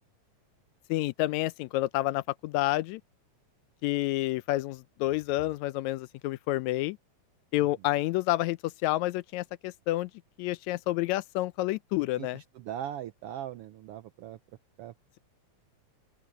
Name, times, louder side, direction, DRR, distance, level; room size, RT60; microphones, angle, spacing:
voice 1, 0.9-3.0 3.8-7.0 7.5-10.1 10.4-12.4, left 17 dB, 80° left, 1.8 m, -29 dB
voice 2, 12.2-14.4 14.8-14.9, right 11 dB, 80° right, 1.3 m, -40 dB
open air
omnidirectional pair, 3.3 m